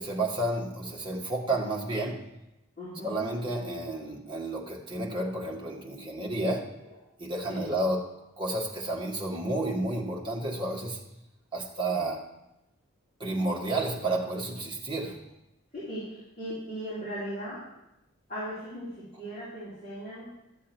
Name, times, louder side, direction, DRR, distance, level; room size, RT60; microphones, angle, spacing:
voice 1, 0.0-2.2 3.0-6.7 7.2-8.0 8.4-11.0 11.5-12.2 13.2-15.2, right 2 dB, 20° right, -3 dB, 1.7 m, -31 dB
voice 2, 2.8-3.2 6.8-6.9 7.5-7.7 11.9-12.1 15.7-17.6 18.3-20.3, equal, 35° left, -11 dB, 3.9 m, -38 dB
13.0 x 7.3 x 4.5 m, 0.91 s
head